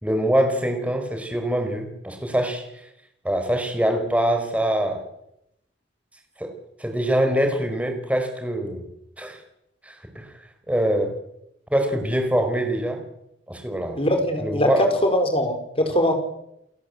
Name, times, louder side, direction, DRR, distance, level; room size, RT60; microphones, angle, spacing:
voice 1, 0.0-2.6 3.2-5.0 6.4-6.5 6.8-8.8 9.2-9.4 9.8-10.3 10.7-11.2 11.7-13.0 13.5-14.0 14.4-14.8, right 1 dB, 5° right, 4 dB, 4.9 m, -24 dB
voice 2, 13.9-16.1, equal, 30° left, 6 dB, 4.6 m, -21 dB
29.5 x 13.5 x 8.5 m, 0.80 s
head